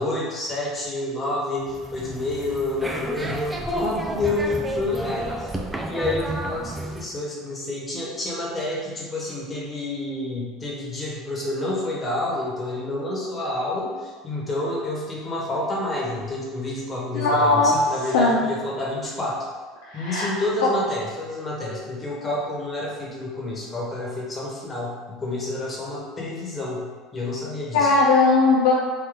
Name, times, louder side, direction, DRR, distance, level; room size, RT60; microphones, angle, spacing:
voice 1, 0.0-5.6 5.9-19.5 19.9-27.9, left 2 dB, 25° left, -4 dB, 1.3 m, -29 dB
sound 1, 1.6-7.1, right 1 dB, 15° right, 0.4 m, -31 dB
voice 2, 17.1-17.7 18.1-18.4 19.9-20.3 27.7-28.7, left 3 dB, 85° left, -4 dB, 0.5 m, -18 dB
3.4 x 2.6 x 4.0 m, 1.5 s
supercardioid pair, 90°, 0 cm